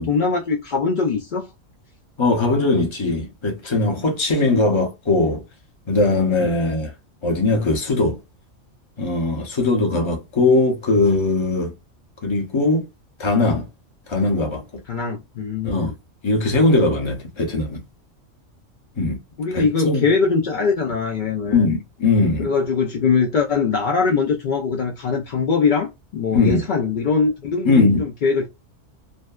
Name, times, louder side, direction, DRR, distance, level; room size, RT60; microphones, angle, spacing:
voice 1, 0.0-1.5 6.4-6.5 14.9-15.9 19.4-21.7 22.4-28.5, left 5 dB, 70° left, 0.4 m, -22 dB
voice 2, 2.2-5.4 5.9-6.9 7.2-8.2 9.0-11.7 12.2-12.8 13.2-13.7 14.1-14.6 15.6-15.9 16.2-17.8 19.0-19.2 19.5-20.1 21.4-22.5 26.3-26.6 27.6-28.0, left 3 dB, 30° left, 0.6 m, -20 dB
2.6 x 2.1 x 2.2 m
omnidirectional pair, 1.3 m